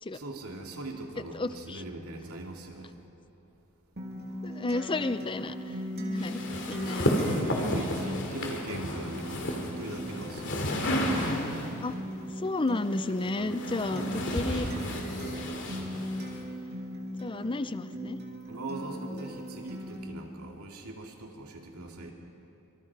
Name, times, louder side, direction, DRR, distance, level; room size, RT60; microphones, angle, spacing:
voice 1, 0.1-3.0 6.8-10.6 13.0-13.6 13.9-15.6 18.5-22.1, right 2 dB, 80° right, 1 dB, 2.5 m, -41 dB
voice 2, 1.3-1.8 4.4-5.8 6.1-7.4 11.8-12.0 12.4-14.0 14.3-14.7 17.2-18.2, left 2 dB, 20° left, 12 dB, 0.5 m, -32 dB
Acoustic guitar, 4.0-20.0, equal, 45° right, 2.7 m, -39 dB
sound 1, 6.2-11.8 12.8-16.4, left 1 dB, 55° left, 2.7 m, -32 dB
25.5 x 25.0 x 4.8 m, 2.9 s
head